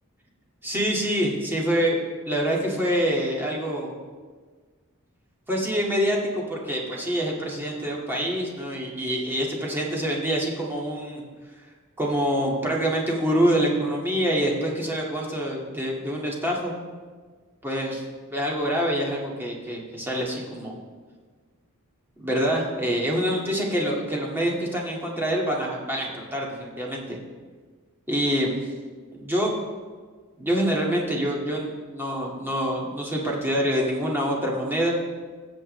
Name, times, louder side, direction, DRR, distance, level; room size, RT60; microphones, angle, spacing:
voice 1, 0.6-3.9 5.5-11.2 12.0-16.7 17.6-18.0 18.3-20.8 22.2-27.2 28.1-28.6 29.1-29.6 30.4-34.9, equal, 10° right, -3 dB, 2.0 m, -26 dB
20.0 x 7.5 x 3.3 m, 1.5 s
head